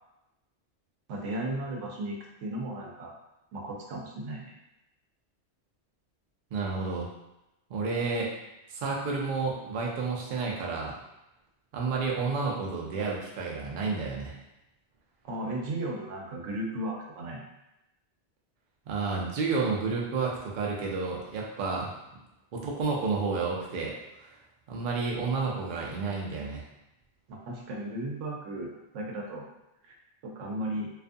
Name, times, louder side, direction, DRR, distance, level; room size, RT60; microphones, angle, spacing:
voice 1, 1.1-3.1 3.5-4.5 15.2-17.4 27.3-29.5 29.8-30.0 30.2-30.9, right 1 dB, 90° right, -1 dB, 0.9 m, -35 dB
voice 2, 6.5-7.1 7.7-8.3 8.7-11.0 11.7-14.4 18.9-22.0 22.5-24.3 24.7-26.6, right 4 dB, 55° right, -2 dB, 0.6 m, -30 dB
2.4 x 2.4 x 2.5 m, 0.91 s
omnidirectional pair, 1.2 m